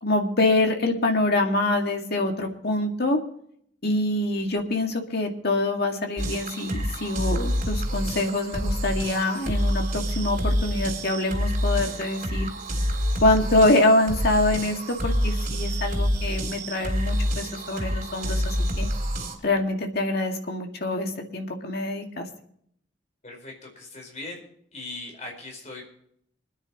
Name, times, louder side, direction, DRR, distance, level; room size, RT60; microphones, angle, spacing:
voice 1, 0.0-3.2 3.8-12.5 13.2-18.9 19.4-22.3, left 2 dB, 60° left, 3 dB, 2.1 m, -25 dB
sound 1, 6.2-19.4, equal, 45° right, 3.0 m, -27 dB
voice 2, 23.2-24.4 24.7-25.9, left 2 dB, 40° left, 1 dB, 4.7 m, -39 dB
25.0 x 9.9 x 3.0 m, 0.68 s
head